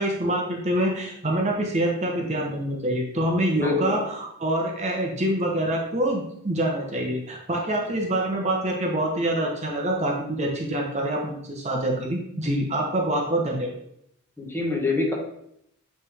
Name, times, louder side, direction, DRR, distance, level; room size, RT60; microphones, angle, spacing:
voice 1, 0.0-13.7, right 1 dB, 30° right, 0 dB, 1.0 m, -26 dB
voice 2, 3.5-4.0 14.4-15.1, left 3 dB, 10° left, -2 dB, 1.1 m, -25 dB
8.6 x 3.4 x 3.5 m, 0.75 s
head